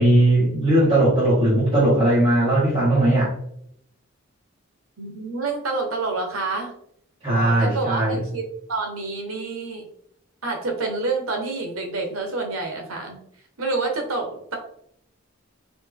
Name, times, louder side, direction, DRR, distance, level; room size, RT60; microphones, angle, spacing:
voice 1, 0.0-3.3 7.2-8.2, right 1 dB, 25° right, -11 dB, 1.5 m, -18 dB
voice 2, 5.0-6.7 7.3-9.8 10.4-13.2 13.6-14.6, right 3 dB, 80° right, 3 dB, 1.0 m, -28 dB
4.2 x 2.9 x 3.4 m, 0.70 s
head